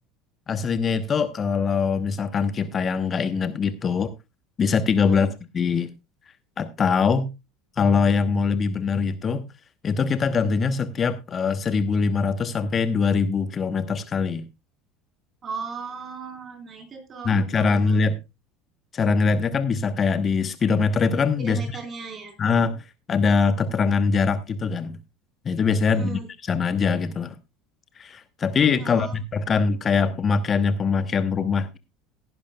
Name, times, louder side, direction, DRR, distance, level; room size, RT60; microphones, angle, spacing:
voice 1, 0.5-4.1 4.6-5.9 6.6-7.3 7.8-9.4 9.8-14.5 17.2-18.2 18.9-21.6 22.4-25.0 25.4-26.2 26.5-27.4 28.0-31.8, left 5 dB, 35° left, 1.1 m, -23 dB
voice 2, 15.4-18.0 21.4-22.3 25.9-26.3 28.8-29.1, right 5 dB, 35° right, 4.3 m, -37 dB
17.0 x 11.0 x 2.3 m
hypercardioid pair, 70°, 0 cm